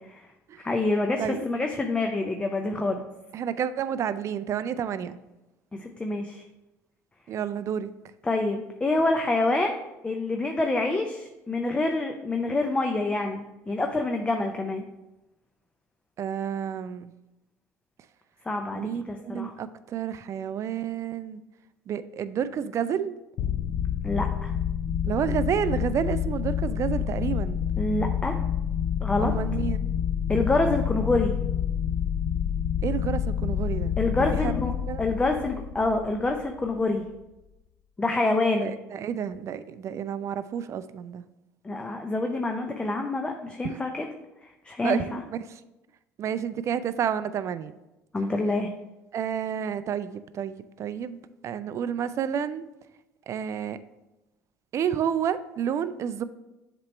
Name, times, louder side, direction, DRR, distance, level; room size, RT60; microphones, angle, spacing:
voice 1, 0.6-3.0 5.7-6.4 8.2-9.8 10.0-14.8 18.5-19.5 24.0-24.5 27.8-28.4 29.0-29.3 30.3-31.3 34.0-34.7 35.0-37.0 38.0-38.7 41.6-44.1 44.4-45.2 48.1-48.7, left 2 dB, 15° left, 3 dB, 0.5 m, -27 dB
voice 2, 3.3-5.2 7.3-7.9 16.2-17.1 18.7-21.4 21.9-23.1 25.0-27.6 29.2-29.8 32.8-33.9 34.4-34.5 34.9-35.0 38.6-41.2 43.6-43.7 44.8-45.6 46.2-47.7 49.1-51.2 51.4-52.7 53.3-53.8 54.7-56.2, right 8 dB, 50° right, 14 dB, 0.4 m, -30 dB
sound 1, 23.4-36.7, left 9 dB, 60° left, 0.4 m, -28 dB
7.5 x 3.0 x 4.4 m, 0.98 s
supercardioid pair, 80°, 7 cm